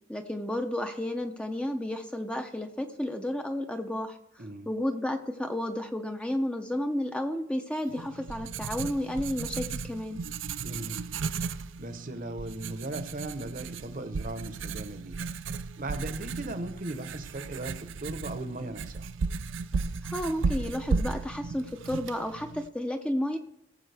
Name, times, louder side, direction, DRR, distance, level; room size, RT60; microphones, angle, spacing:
voice 1, 0.1-10.2 20.0-23.4, left 1 dB, 5° left, 5 dB, 0.6 m, -32 dB
Writing, 7.9-22.7, right 4 dB, 75° right, 0.5 m, -35 dB
voice 2, 10.6-11.0 11.8-15.1 15.8-19.0, right 2 dB, 45° right, 9 dB, 0.9 m, -38 dB
17.5 x 7.4 x 3.4 m, 0.81 s
head